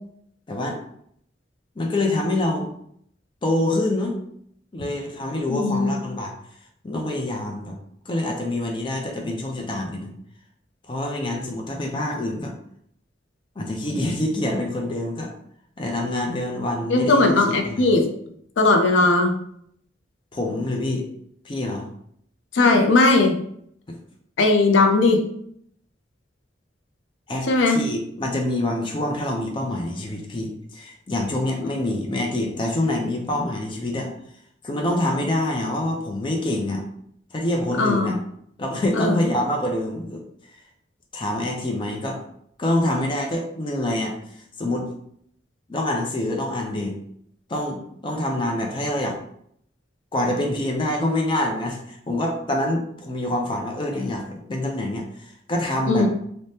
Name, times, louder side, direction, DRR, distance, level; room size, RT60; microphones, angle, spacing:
voice 1, 0.5-0.8 1.8-2.7 3.4-4.2 4.7-6.3 6.8-7.7 8.1-10.1 10.9-12.5 13.6-15.3 15.8-17.3 17.6-17.8 20.3-21.0 21.4-21.9 23.9-24.0 27.3-34.1 34.6-36.8 37.3-38.2 38.6-40.2 41.1-42.2 42.6-44.1 44.6-44.9 45.7-46.9 47.5-49.1 50.1-56.1, left 1 dB, 25° left, 1 dB, 0.4 m, -26 dB
voice 2, 5.5-5.9 16.9-18.1 18.6-19.4 22.5-23.4 24.4-25.2 27.5-27.8 37.8-38.2 38.9-39.2 55.9-56.1, left 3 dB, 80° left, 4 dB, 0.4 m, -18 dB
3.3 x 2.1 x 2.7 m, 0.69 s
head